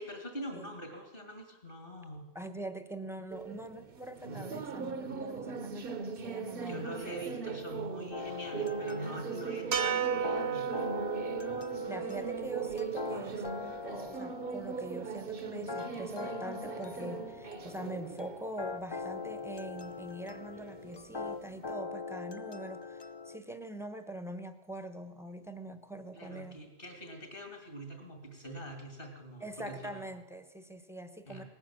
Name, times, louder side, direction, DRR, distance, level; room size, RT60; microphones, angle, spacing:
voice 1, 0.0-2.3 6.6-10.7 26.1-30.0 31.3-31.4, right 1 dB, 50° left, 3 dB, 2.9 m, -44 dB
voice 2, 2.3-6.8 11.8-26.6 29.4-31.4, right 1 dB, 5° right, 9 dB, 0.9 m, -43 dB
sound 1, 3.3-21.7, right 5 dB, 55° right, 1.0 m, -40 dB
sound 2, 8.1-23.4, left 4 dB, 30° left, 0.5 m, -42 dB
sound 3, 9.7-14.1, right 7 dB, 75° right, 1.3 m, -35 dB
18.0 x 9.8 x 7.6 m, 1.1 s
omnidirectional pair, 1.1 m